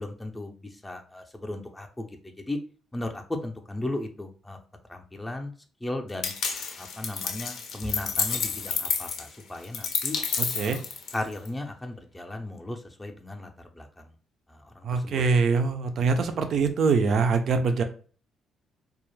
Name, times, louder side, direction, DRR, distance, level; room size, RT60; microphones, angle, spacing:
voice 1, 0.0-2.1 2.4-2.6 2.9-4.6 4.9-5.5 5.8-6.3 6.8-10.2 10.6-10.8 11.1-13.5 13.8-14.1 14.5-15.2, left 1 dB, 15° left, 3 dB, 0.5 m, -36 dB
sound 1, 6.2-11.5, left 6 dB, 75° left, 0.5 m, -30 dB
voice 2, 10.4-10.8 14.8-17.8, right 4 dB, 65° right, 7 dB, 0.4 m, -24 dB
2.3 x 2.0 x 3.1 m, 0.40 s
cardioid pair, 75°, 0 cm